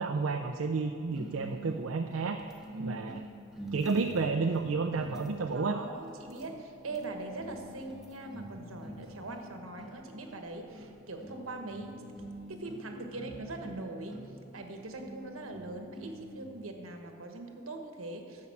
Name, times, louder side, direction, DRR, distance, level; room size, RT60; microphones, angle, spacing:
voice 1, 0.0-2.4 2.8-3.2 3.7-5.8, right 4 dB, 75° right, 5 dB, 0.5 m, -31 dB
sound 1, 1.1-16.6, equal, ahead, 1.2 m, -47 dB
voice 2, 2.7-3.1 5.5-14.2 14.5-18.5, right 2 dB, 90° right, 4 dB, 1.3 m, -42 dB
11.0 x 7.3 x 7.1 m, 2.8 s
head